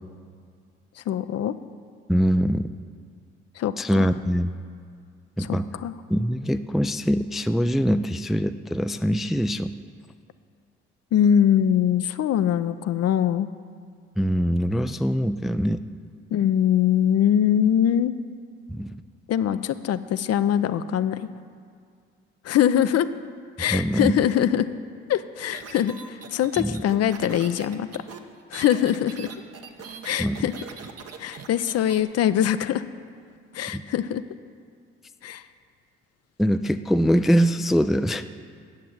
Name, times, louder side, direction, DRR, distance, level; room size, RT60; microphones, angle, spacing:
voice 1, 1.0-1.5 3.6-4.1 5.4-5.9 11.1-13.5 16.3-18.1 19.3-21.3 22.4-23.1 23.6-24.7 25.1-28.0 28.5-29.3 30.0-30.5 31.2-32.8 33.5-34.2 35.2-35.4, left 10 dB, 55° left, 12 dB, 0.5 m, -22 dB
voice 2, 2.1-2.7 3.8-4.5 5.4-5.7 6.1-9.8 14.2-15.8 18.7-19.0 23.7-24.1 26.6-26.8 30.2-30.4 33.7-33.8 36.4-38.2, equal, ahead, 10 dB, 0.4 m, -23 dB
sound 1, 25.5-32.0, right 6 dB, 50° right, 1.0 m, -41 dB
9.5 x 7.4 x 7.8 m, 2.1 s
hypercardioid pair, 50°, 31 cm